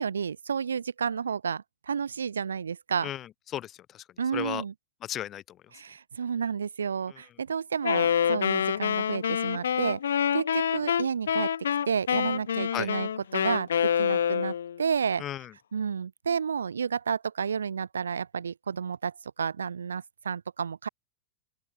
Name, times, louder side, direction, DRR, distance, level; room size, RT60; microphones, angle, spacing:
voice 1, 0.0-3.1 4.2-4.7 5.7-11.5 11.9-13.7 14.0-15.2 15.7-20.9, right 6 dB, 70° right, 1.8 m, -31 dB
voice 2, 3.0-4.0 4.3-4.6 5.0-5.6 12.7-12.9 15.2-15.5, left 12 dB, 30° left, 3.5 m, -35 dB
Wind instrument woodwind instrument, 7.8-14.8, left 8 dB, 65° left, 3.4 m, -27 dB
open air
figure-of-eight pair, 90°, 0 cm